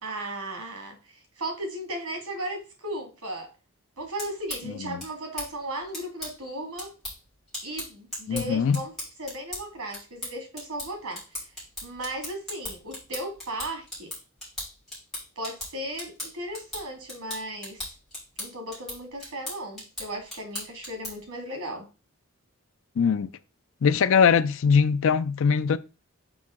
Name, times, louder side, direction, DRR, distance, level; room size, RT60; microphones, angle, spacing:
voice 1, 0.0-3.5 4.0-6.9 7.6-8.9 9.2-11.2 11.8-14.1 15.4-17.9 18.4-21.8, right 1 dB, 90° right, 2.1 m, -36 dB
sound 1, 4.0-21.3, left 1 dB, ahead, 3.5 m, -40 dB
voice 2, 8.3-8.8 23.0-23.3 23.8-25.8, left 6 dB, 60° left, 0.4 m, -21 dB
6.1 x 5.2 x 3.7 m
head